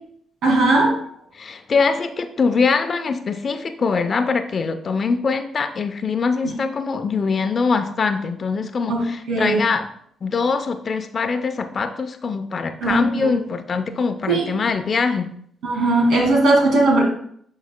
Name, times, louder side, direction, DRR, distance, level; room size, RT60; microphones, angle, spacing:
voice 1, 0.4-1.0 8.9-9.6 12.8-13.3 14.3-14.5 15.6-17.0, right 2 dB, 75° right, 0 dB, 2.1 m, -18 dB
voice 2, 1.4-9.9 10.2-15.3, left 4 dB, 50° left, 8 dB, 0.6 m, -23 dB
11.0 x 4.1 x 2.2 m, 0.65 s
supercardioid pair, 55°, 0 cm